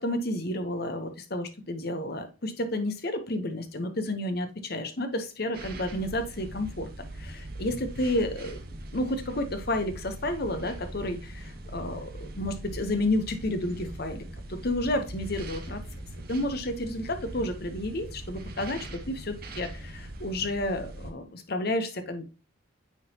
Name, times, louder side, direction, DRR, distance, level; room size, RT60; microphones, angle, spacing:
voice 1, 0.0-6.9 7.1-8.6 8.9-14.2 14.5-15.8 16.3-22.2, left 1 dB, 50° left, 8 dB, 0.9 m, -31 dB
sound 1, 5.5-21.1, right 1 dB, 45° right, 0.9 m, -41 dB
9.0 x 3.8 x 2.8 m, 0.32 s
head